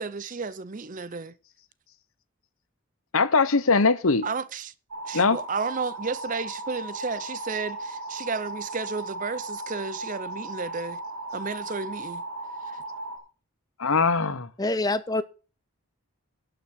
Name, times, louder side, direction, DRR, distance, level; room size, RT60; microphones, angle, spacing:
voice 1, 0.0-1.3 4.2-4.7 5.1-11.0 11.3-12.2 12.7-12.8, right 4 dB, 35° right, 0.6 m, -32 dB
voice 2, 3.1-4.2 5.1-5.4 13.8-14.5, left 4 dB, 70° left, 1.0 m, -21 dB
sound 1, 4.9-13.2, right 2 dB, 75° right, 2.8 m, -36 dB
voice 3, 14.6-15.2, left 2 dB, 15° left, 0.7 m, -25 dB
11.5 x 7.1 x 6.2 m
head